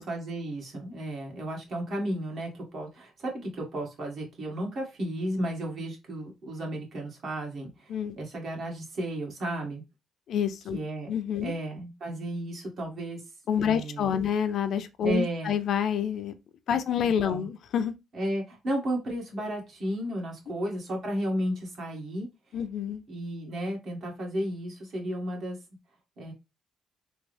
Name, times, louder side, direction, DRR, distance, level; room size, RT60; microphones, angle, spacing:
voice 1, 0.0-9.8 10.7-11.1 11.4-13.2 13.6-14.2 15.0-15.5 17.0-17.5 18.1-22.3 23.1-25.6 26.2-26.3, right 1 dB, 60° right, 1.5 m, -33 dB
voice 2, 10.3-10.8 11.1-11.5 13.5-16.3 16.7-17.9 22.5-23.0, left 8 dB, 70° left, 0.4 m, -28 dB
3.5 x 2.0 x 3.3 m
cardioid pair, 90°, 0 cm